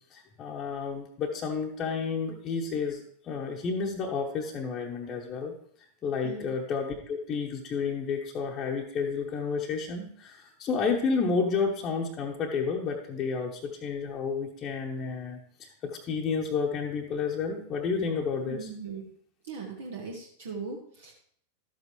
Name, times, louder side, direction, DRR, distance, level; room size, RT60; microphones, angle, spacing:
voice 1, 0.1-5.5 6.0-18.7, left 5 dB, 30° left, -2 dB, 1.0 m, -31 dB
voice 2, 6.2-6.5 18.4-19.1 19.4-21.1, right 4 dB, 60° right, 0 dB, 1.2 m, -39 dB
12.5 x 8.0 x 3.2 m, 0.65 s
figure-of-eight pair, 90°, 0 cm